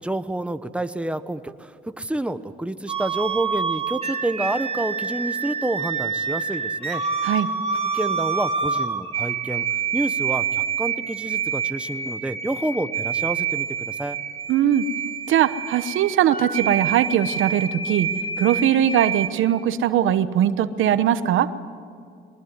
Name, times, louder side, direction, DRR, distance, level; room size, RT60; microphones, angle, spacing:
voice 1, 0.0-7.0 7.3-7.4 7.9-9.7 9.9-14.2, right 1 dB, 5° right, 10 dB, 1.1 m, -29 dB
sound 1, 2.9-19.3, right 6 dB, 30° right, 2.9 m, -27 dB
voice 2, 14.5-14.8 15.3-18.1 18.4-21.5, right 10 dB, 80° right, 13 dB, 1.1 m, -20 dB
22.5 x 20.5 x 9.6 m, 2.4 s
cardioid pair, 90°, 20 cm